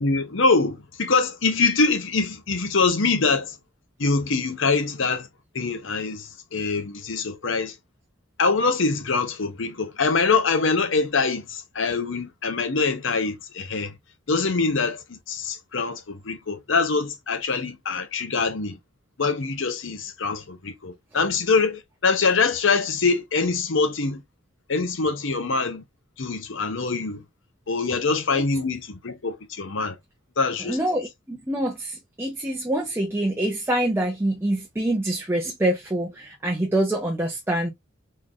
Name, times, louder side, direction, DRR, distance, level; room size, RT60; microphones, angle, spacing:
voice 1, 0.0-3.5 4.0-5.3 5.5-7.7 8.4-13.9 14.3-18.8 19.2-24.2 24.7-25.8 26.2-27.2 27.7-30.0 30.4-30.8, left 4 dB, 70° left, 0.9 m, -24 dB
voice 2, 30.6-37.7, right 1 dB, 10° right, 0.8 m, -25 dB
3.8 x 3.2 x 2.5 m
head